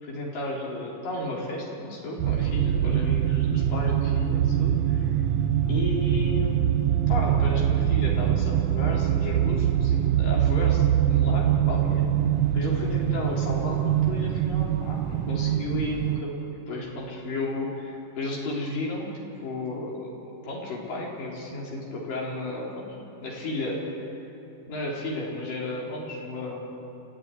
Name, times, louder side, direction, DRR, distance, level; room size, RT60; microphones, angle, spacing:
voice 1, 0.0-5.2 5.7-6.7 7.1-12.1 12.5-16.4 16.7-19.1 19.4-24.1 24.7-26.6, left 2 dB, 90° left, -3 dB, 5.7 m, -33 dB
sound 1, 2.2-16.2, right 10 dB, 75° right, 1.6 m, -24 dB
28.0 x 14.5 x 9.6 m, 3.0 s
omnidirectional pair, 3.8 m